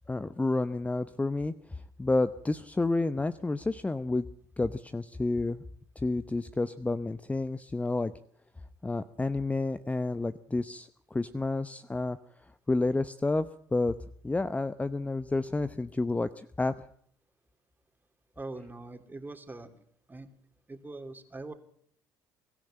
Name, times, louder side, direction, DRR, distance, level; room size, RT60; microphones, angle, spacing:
voice 1, 0.1-4.3 4.6-5.6 6.0-8.1 8.8-12.2 12.7-13.9 14.2-16.7, left 2 dB, 15° left, 12 dB, 0.8 m, -30 dB
voice 2, 18.3-20.3 20.7-21.5, right 2 dB, 20° right, 7 dB, 3.1 m, -43 dB
22.5 x 13.5 x 8.9 m, 0.64 s
hypercardioid pair, 65°, 9 cm